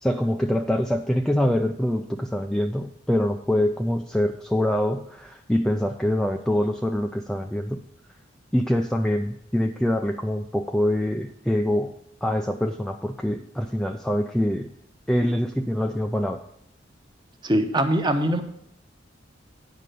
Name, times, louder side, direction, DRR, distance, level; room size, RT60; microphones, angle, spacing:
voice 1, 0.0-7.8 8.5-12.0 12.2-14.7 15.1-16.4, left 1 dB, 5° left, 4 dB, 0.3 m, -24 dB
voice 2, 17.4-18.4, right 1 dB, 25° right, 6 dB, 0.9 m, -22 dB
9.2 x 5.4 x 6.6 m, 0.75 s
head